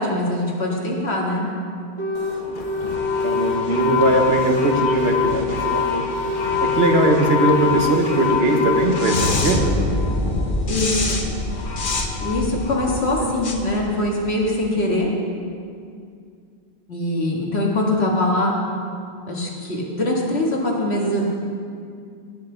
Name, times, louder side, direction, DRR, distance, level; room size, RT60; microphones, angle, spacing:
voice 1, 0.0-1.5 10.7-11.2 12.2-15.1 16.9-18.5 19.3-21.2, left 1 dB, 85° left, -2 dB, 2.0 m, -22 dB
sound 1, 2.0-2.4 2.6-4.1 4.4-6.0 6.2-7.8 8.0-9.0, left 3 dB, 15° left, 1.2 m, -25 dB
sound 2, 2.1-14.5, left 4 dB, 55° left, 1.1 m, -25 dB
voice 2, 3.2-6.0 6.6-9.8 13.2-13.3, right 2 dB, 75° right, 3 dB, 1.3 m, -20 dB
17.5 x 8.1 x 3.9 m, 2.3 s
omnidirectional pair, 1.1 m